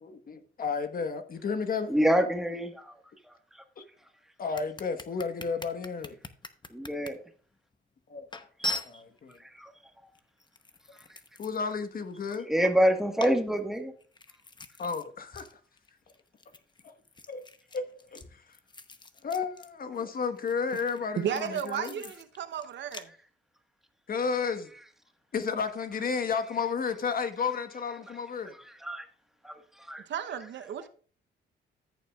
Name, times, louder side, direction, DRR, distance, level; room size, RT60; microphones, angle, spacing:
voice 1, 0.0-1.9 3.8-3.9 4.4-6.1 8.1-8.2 8.8-9.4 11.4-12.5 14.8-15.5 16.8-16.9 17.3-17.4 17.7-18.4 19.2-21.9 24.1-24.7 25.3-28.5, left 5 dB, 45° left, 1.2 m, -32 dB
voice 2, 1.9-2.8 6.7-7.2 9.6-9.7 12.4-13.9 28.8-29.0 29.4-29.5 29.9-30.0 30.3-30.5, equal, ahead, 1.4 m, -26 dB
sound 1, 4.5-7.1 7.7-7.8 8.3-9.4 10.2-11.8 12.1-12.9 13.2-15.1 15.3-15.5 15.8-19.7 20.0-23.0, left 2 dB, 20° left, 0.8 m, -41 dB
voice 3, 21.2-23.1 30.1-30.9, right 9 dB, 65° right, 0.8 m, -33 dB
14.0 x 7.1 x 2.4 m
cardioid pair, 90°, 20 cm